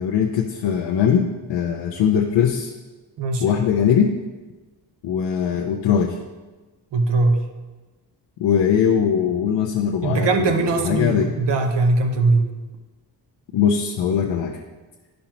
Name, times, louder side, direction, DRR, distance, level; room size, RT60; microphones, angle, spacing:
voice 1, 0.0-2.7 3.4-4.1 5.0-6.2 8.4-11.3 13.5-14.6, left 8 dB, 85° left, 1 dB, 0.7 m, -21 dB
voice 2, 3.2-3.6 6.9-7.4 10.0-12.5, right 3 dB, 75° right, 5 dB, 1.0 m, -20 dB
10.5 x 5.4 x 2.9 m, 1.2 s
cardioid pair, 95°, 42 cm